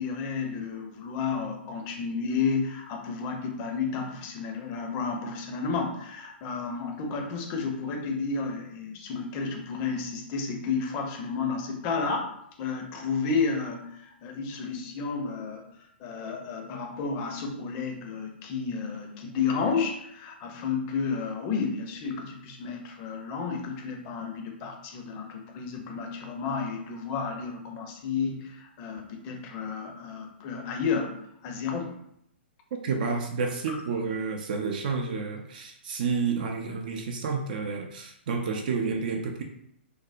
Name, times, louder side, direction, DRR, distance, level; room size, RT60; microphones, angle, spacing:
voice 1, 0.0-12.3 12.6-15.7 16.0-31.1 31.4-32.0 33.7-33.8, left 5 dB, 30° left, 3 dB, 0.5 m, -31 dB
voice 2, 32.7-39.4, right 5 dB, 50° right, 3 dB, 0.4 m, -30 dB
3.3 x 2.0 x 2.5 m, 0.74 s
figure-of-eight pair, 115°, 6 cm